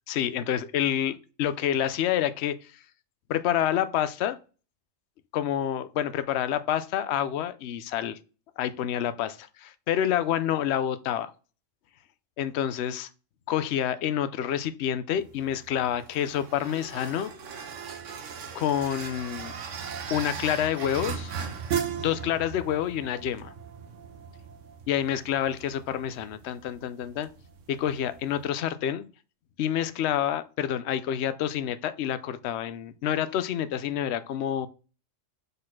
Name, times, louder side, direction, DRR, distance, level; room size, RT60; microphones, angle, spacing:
voice 1, 0.1-2.7 3.3-4.4 5.3-8.2 8.6-11.3 12.4-13.1 13.5-17.3 18.5-19.5 20.1-21.3 22.0-23.5 24.9-27.3 27.7-29.1 29.6-34.7, left 10 dB, 65° left, 0.8 m, -28 dB
sound 1, 15.1-28.5, right 7 dB, 70° right, 1.2 m, -38 dB
5.3 x 4.1 x 5.8 m
omnidirectional pair, 1.4 m